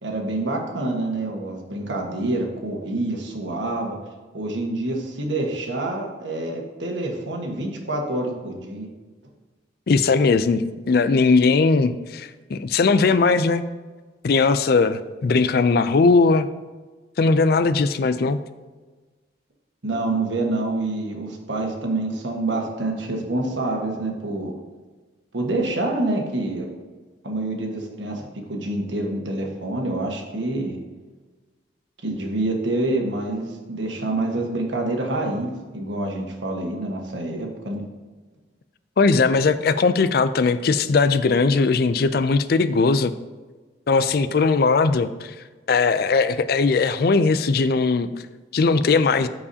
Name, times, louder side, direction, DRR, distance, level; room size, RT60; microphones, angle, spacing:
voice 1, 0.0-4.0 4.3-8.9 19.8-24.5 25.3-26.7 27.2-30.8 32.0-37.8, right 2 dB, 85° right, 1 dB, 1.4 m, -27 dB
voice 2, 9.9-13.6 14.2-16.5 17.2-18.4 39.0-43.1 43.9-45.3 45.7-48.1 48.5-49.3, left 4 dB, 55° left, 13 dB, 0.4 m, -19 dB
13.5 x 4.8 x 2.8 m, 1.3 s
head